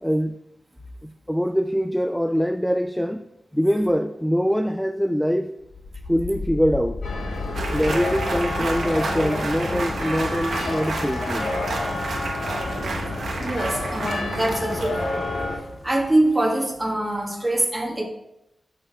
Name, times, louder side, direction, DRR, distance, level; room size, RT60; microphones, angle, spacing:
voice 1, 0.0-0.4 1.0-3.3 3.5-5.5 6.1-7.0 7.7-11.5, equal, 5° left, 9 dB, 0.3 m, -23 dB
sound 1, 5.6-16.4, left 3 dB, 45° left, 0.8 m, -35 dB
sound 2, 7.0-15.6, left 2 dB, 90° left, 2.1 m, -29 dB
sound 3, 7.5-15.2, right 3 dB, 80° right, 1.1 m, -32 dB
voice 2, 13.4-15.2 15.8-18.0, right 1 dB, 15° right, -1 dB, 1.8 m, -24 dB
6.7 x 5.8 x 4.8 m, 0.86 s
wide cardioid pair, 75°, 0 cm